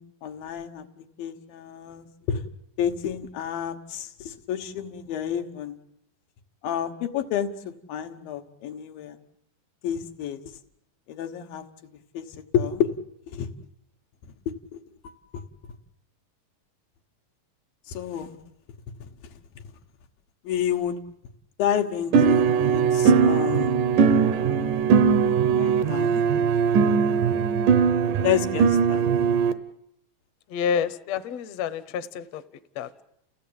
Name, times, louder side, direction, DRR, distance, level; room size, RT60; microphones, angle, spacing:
voice 1, 0.0-2.4 2.8-5.8 6.6-9.2 9.8-10.4 11.1-11.7 12.1-12.3 12.5-12.9 13.3-13.5 14.7-14.8 15.0-15.4 17.9-18.4 19.0-19.1 20.4-21.0 21.6-23.8 25.5-26.2 28.2-29.3, left 9 dB, 90° left, 5 dB, 3.1 m, -30 dB
sound 1, 22.1-29.5, right 6 dB, 70° right, 2.5 m, -20 dB
voice 2, 30.5-32.4 32.8-32.9, left 7 dB, 65° left, 12 dB, 1.8 m, -28 dB
29.5 x 16.5 x 8.7 m, 0.79 s
omnidirectional pair, 4.0 m